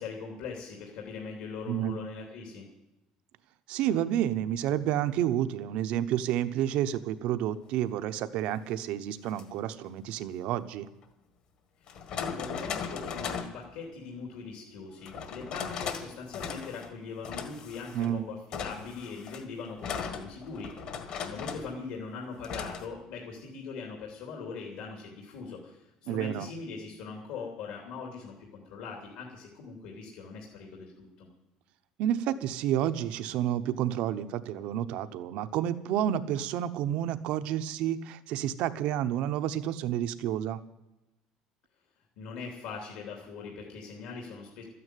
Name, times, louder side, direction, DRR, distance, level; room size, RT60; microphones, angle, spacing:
voice 1, 0.0-2.6 11.8-20.7 21.2-31.3 42.2-44.6, left 5 dB, 65° left, 0 dB, 3.1 m, -41 dB
voice 2, 1.7-2.0 3.7-10.9 17.9-18.2 26.1-26.5 32.0-40.6, right 11 dB, 55° right, 12 dB, 0.9 m, -30 dB
sound 1, 9.2-9.4 11.0-11.1 11.9-13.6 15.1-16.1 16.3-16.9 17.2-18.1 18.5-21.7 22.4-22.9, left 6 dB, 45° left, 1.7 m, -37 dB
13.0 x 9.7 x 9.2 m, 0.94 s
cardioid pair, 175°, 2 cm